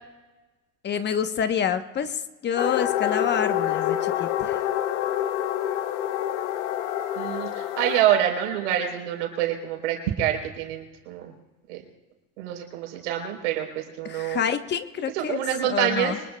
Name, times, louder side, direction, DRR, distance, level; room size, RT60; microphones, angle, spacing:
voice 1, 0.8-4.6 14.0-16.2, left 7 dB, 30° left, 9 dB, 1.1 m, -28 dB
sound 1, 2.6-8.0, left 12 dB, 85° left, 1.1 m, -27 dB
voice 2, 7.2-11.3 11.7-11.8 12.4-14.4 15.1-16.2, right 10 dB, 90° right, 2 dB, 3.9 m, -26 dB
24.5 x 20.5 x 2.3 m, 1.2 s
supercardioid pair, 115°, 34 cm